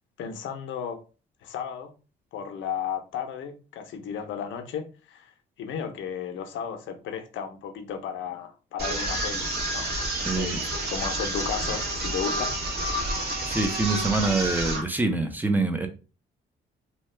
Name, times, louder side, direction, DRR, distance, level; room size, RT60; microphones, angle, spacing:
voice 1, 0.2-1.0 1.4-1.9 2.3-5.3 5.6-9.9 10.2-10.5 10.9-12.5, left 7 dB, 75° left, 0.7 m, -34 dB
sound 1, 8.8-14.8, right 1 dB, 55° right, 1.4 m, -29 dB
voice 2, 10.2-10.6 13.5-15.9, right 3 dB, 10° right, 0.6 m, -25 dB
2.8 x 2.3 x 3.2 m
cardioid pair, 90°, 20 cm